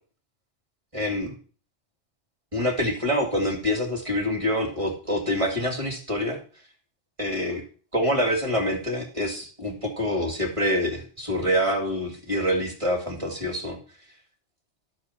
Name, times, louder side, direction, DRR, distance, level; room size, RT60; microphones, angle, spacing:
voice 1, 0.9-1.3 2.5-6.4 7.2-7.6 7.9-13.8, equal, 25° right, 1 dB, 2.2 m, -26 dB
12.5 x 4.7 x 5.8 m, 0.40 s
omnidirectional pair, 1.3 m